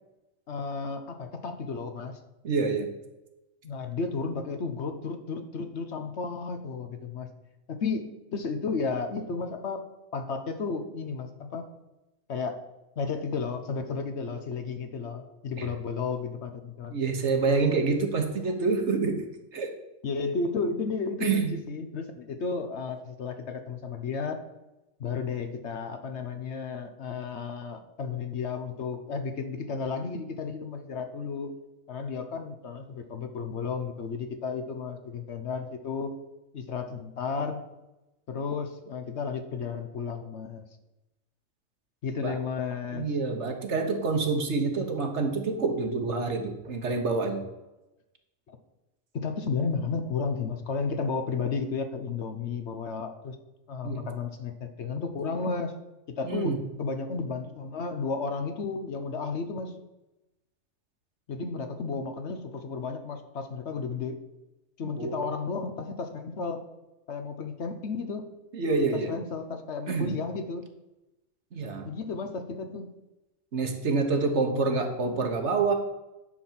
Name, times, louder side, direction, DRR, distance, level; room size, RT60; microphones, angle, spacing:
voice 1, 0.5-2.2 3.6-7.3 7.7-8.1 8.3-9.8 10.1-11.7 12.3-12.6 13.0-16.9 20.0-24.4 25.0-31.6 31.9-36.1 36.5-37.7 38.3-40.6 42.0-43.1 48.5-48.6 49.1-53.4 53.7-55.7 56.1-59.8 61.3-64.2 64.8-66.6 67.1-68.3 68.9-70.7 71.8-72.9 74.2-74.8, left 4 dB, 60° left, 7 dB, 1.0 m, -33 dB
voice 2, 2.4-2.9 15.6-15.7 16.9-19.3 19.5-19.7 21.2-21.5 42.2-42.3 42.9-47.4 53.8-54.1 56.2-56.6 64.8-65.2 68.5-69.1 69.9-70.1 71.5-71.9 73.5-75.7, right 4 dB, 60° right, 5 dB, 1.4 m, -27 dB
10.0 x 4.3 x 7.4 m, 0.99 s
omnidirectional pair, 1.4 m